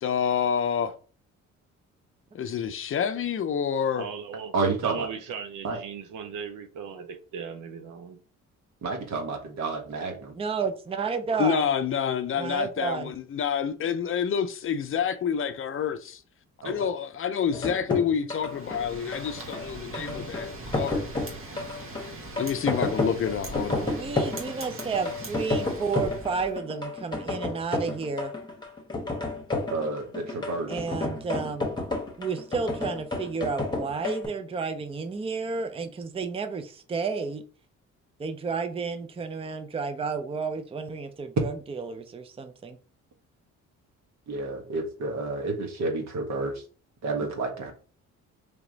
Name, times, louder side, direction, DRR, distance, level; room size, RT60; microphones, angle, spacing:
voice 1, 0.0-0.9 2.3-4.1 11.4-16.2 16.6-21.0 22.4-23.9, left 7 dB, 45° left, 0.5 m, -28 dB
voice 2, 4.0-4.5 4.8-8.2, right 6 dB, 85° right, 0.7 m, -38 dB
voice 3, 4.5-5.1 5.6-5.8 8.8-10.3 16.6-16.9 29.7-30.7 44.3-46.6 47.0-47.7, right 3 dB, 65° right, 1.4 m, -30 dB
voice 4, 10.4-11.7 12.4-13.1 19.9-20.3 23.7-28.3 30.7-31.7 32.2-37.4 38.2-42.8, right 5 dB, 20° right, 0.5 m, -31 dB
sound 1, 17.5-34.3, left 2 dB, 15° left, 1.2 m, -31 dB
Wind, 18.4-26.5, right 2 dB, 45° right, 1.3 m, -41 dB
3.4 x 3.0 x 3.9 m
cardioid pair, 90°, 30 cm